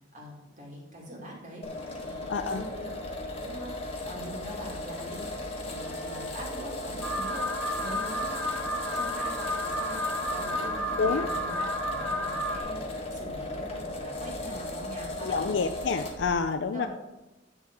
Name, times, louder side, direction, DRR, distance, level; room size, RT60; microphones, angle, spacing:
voice 1, 0.1-3.0 3.4-15.5 16.4-16.9, right 1 dB, 45° right, -2 dB, 2.5 m, -44 dB
sound 1, 1.6-16.3, left 1 dB, 35° left, 1.5 m, -36 dB
voice 2, 2.3-2.6 11.0-11.3 15.2-16.9, left 5 dB, 85° left, 7 dB, 0.5 m, -28 dB
Wind instrument woodwind instrument, 5.7-10.9, right 2 dB, 75° right, 2.9 m, -49 dB
Alarm, 7.0-12.6, equal, 10° left, 1.1 m, -32 dB
8.8 x 6.5 x 4.8 m, 1.0 s
head